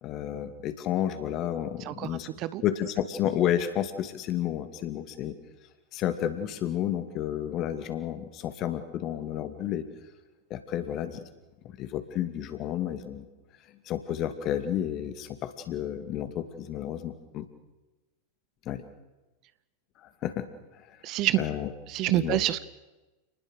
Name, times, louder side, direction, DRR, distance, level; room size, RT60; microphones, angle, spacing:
voice 1, 0.0-2.3 2.6-5.3 5.9-9.9 10.5-11.2 11.6-13.3 13.9-17.5 18.7-18.8 20.0-20.5 20.7-21.0 21.4-21.7 22.1-22.4, left 11 dB, 35° left, 9 dB, 2.5 m, -31 dB
voice 2, 1.8-2.6 21.0-21.4 21.9-22.6, right 15 dB, 40° right, 16 dB, 0.8 m, -27 dB
29.0 x 20.0 x 6.6 m, 1.1 s
figure-of-eight pair, 90°, 0 cm